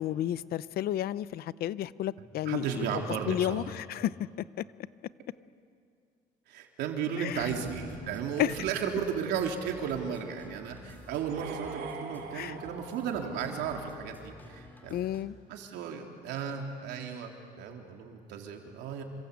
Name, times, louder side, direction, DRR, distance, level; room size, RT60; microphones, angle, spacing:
voice 1, 0.0-2.9 3.3-4.1 7.2-7.5 8.4-8.5 12.3-12.5 14.9-15.4, left 12 dB, 65° left, 17 dB, 0.7 m, -31 dB
voice 2, 2.5-3.7 6.5-15.0 15.5-17.3 17.6-19.0, right 7 dB, 85° right, 2 dB, 3.5 m, -34 dB
sound 1, 7.3-15.2, left 1 dB, 10° left, 3.7 m, -52 dB
sound 2, 11.1-14.1, right 5 dB, 65° right, 3.0 m, -43 dB
28.0 x 25.5 x 8.4 m, 2.3 s
cardioid pair, 110°, 17 cm